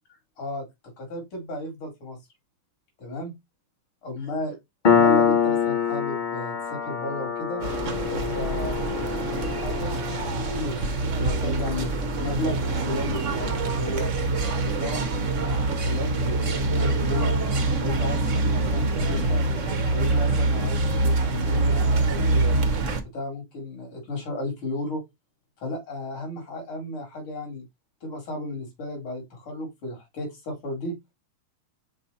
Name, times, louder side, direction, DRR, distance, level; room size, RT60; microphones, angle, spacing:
voice 1, 1.0-2.2 3.0-3.3 4.0-4.6 4.8-7.6 8.1-9.9 10.3-10.8 11.0-14.1 14.5-17.4 17.8-19.4 19.9-22.6 23.1-25.0 25.6-27.6 28.0-30.9, left 2 dB, 85° left, 3.5 m, -34 dB
Piano, 4.8-12.0, left 7 dB, 55° left, 0.5 m, -25 dB
sound 1, 7.6-23.0, right 2 dB, 45° right, 1.1 m, -25 dB
5.5 x 4.3 x 4.1 m
omnidirectional pair, 2.3 m